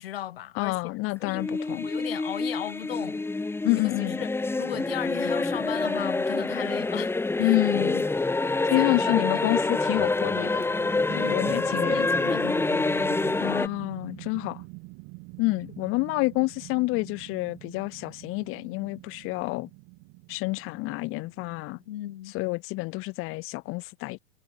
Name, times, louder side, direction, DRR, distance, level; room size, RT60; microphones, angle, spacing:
voice 1, 0.0-0.8 1.2-1.5 1.8-3.2 4.0-4.3 4.6-7.6 8.8-9.7 11.1-13.0 21.9-22.3, left 13 dB, 65° left, 2.8 m, -36 dB
voice 2, 0.6-1.9 3.6-4.2 7.4-8.0 8.7-10.6 11.2-12.1 13.4-14.6 15.4-19.7 20.3-21.8 22.3-24.2, left 24 dB, 40° left, 1.6 m, -28 dB
sound 1, 1.3-13.7, left 3 dB, 5° left, 1.5 m, -27 dB
sound 2, 10.0-22.2, right 31 dB, 45° right, 3.8 m, -45 dB
figure-of-eight pair, 90°, 32 cm